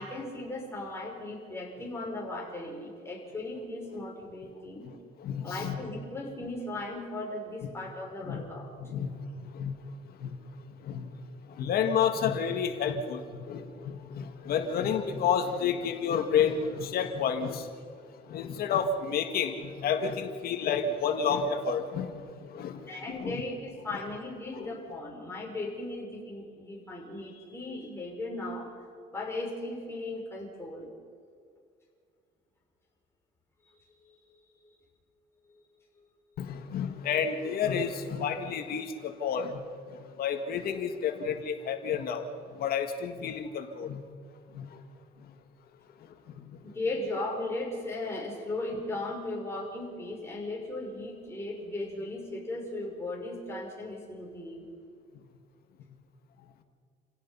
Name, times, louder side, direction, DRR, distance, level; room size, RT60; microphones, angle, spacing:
voice 1, 0.0-4.9 5.4-8.7 22.9-28.8 29.1-30.9 33.6-33.7 34.0-34.2 34.6-34.7 35.5-35.6 46.6-54.6, left 2 dB, 15° left, -2 dB, 5.7 m, -37 dB
voice 2, 5.2-5.8 8.2-8.5 8.8-11.1 11.4-17.8 18.2-22.9 23.2-23.4 24.5-24.7 36.4-44.0 44.5-44.8 45.2-45.3 46.1-46.8 55.1-55.2, left 7 dB, 65° left, 6 dB, 1.9 m, -31 dB
28.5 x 17.0 x 5.7 m, 2.2 s
cardioid pair, 110°, 17 cm